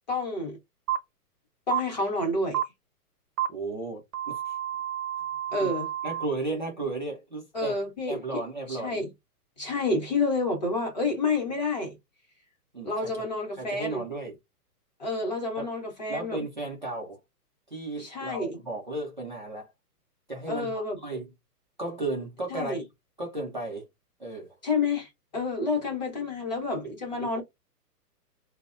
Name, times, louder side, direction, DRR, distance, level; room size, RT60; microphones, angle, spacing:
voice 1, 0.1-0.6 1.7-2.6 5.5-5.9 7.5-9.1 9.6-11.9 12.8-14.0 15.0-16.4 18.0-18.6 20.5-21.0 22.5-22.8 24.6-27.4, left 3 dB, 25° left, 0.7 m, -29 dB
sound 1, 0.9-1.0 1.7-1.8 2.5-2.6 3.4-3.5 4.1-6.2, right 11 dB, 70° right, 0.8 m, -30 dB
voice 2, 3.5-4.5 5.6-5.7 6.0-7.7 8.1-9.1 12.7-13.2 13.6-14.3 15.6-15.7 16.1-17.2 17.7-19.7 20.3-21.3 21.8-22.8 23.2-23.9 24.2-24.6 26.8-26.9 27.2-27.4, right 2 dB, 30° right, 0.4 m, -34 dB
4.4 x 2.0 x 2.4 m
hypercardioid pair, 170°, 48 cm